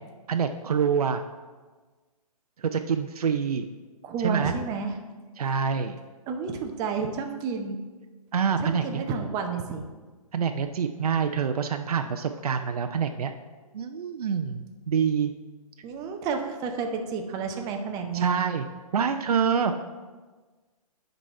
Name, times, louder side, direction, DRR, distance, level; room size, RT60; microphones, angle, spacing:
voice 1, 0.3-1.2 2.6-3.7 4.2-4.5 5.4-6.0 8.3-9.0 10.3-13.3 13.7-15.3 18.1-18.7 18.9-19.7, right 6 dB, 70° right, 7 dB, 0.5 m, -26 dB
voice 2, 4.0-4.9 5.4-5.7 6.3-7.8 8.6-9.8 15.8-18.3, right 5 dB, 20° right, 4 dB, 0.7 m, -31 dB
9.9 x 4.0 x 4.4 m, 1.3 s
figure-of-eight pair, 135°, 20 cm